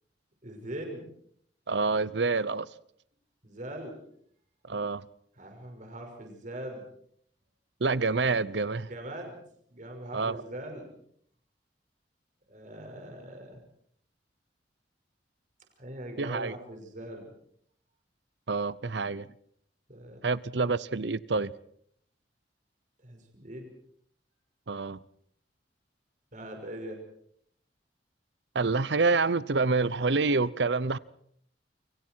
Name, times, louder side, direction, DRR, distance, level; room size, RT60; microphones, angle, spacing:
voice 1, 0.4-1.1 3.4-4.0 5.4-6.8 8.9-9.4 9.7-10.8 12.5-13.6 15.8-17.3 19.9-20.2 23.0-23.7 26.3-27.0, right 1 dB, 45° right, 5.9 m, -41 dB
voice 2, 1.7-2.7 4.7-5.1 7.8-8.9 10.1-10.4 16.2-16.6 18.5-19.3 20.2-21.5 24.7-25.0 28.5-31.0, right 3 dB, 75° right, 0.8 m, -27 dB
29.0 x 24.5 x 4.7 m
head